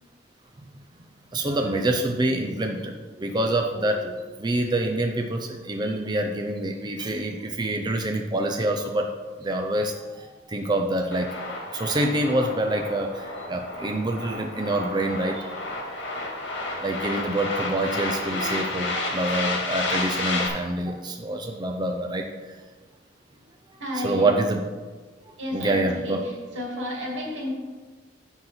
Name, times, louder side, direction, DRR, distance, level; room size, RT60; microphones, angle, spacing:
voice 1, 1.3-9.1 9.4-11.4 11.7-15.4 16.8-22.6 24.0-24.6 25.5-26.2, right 1 dB, 25° right, 3 dB, 0.6 m, -26 dB
sound 1, 11.1-20.5, left 2 dB, 75° left, 1.9 m, -31 dB
voice 2, 23.8-24.3 25.4-27.5, left 1 dB, 85° right, -2 dB, 2.6 m, -32 dB
7.7 x 5.8 x 5.9 m, 1.4 s
head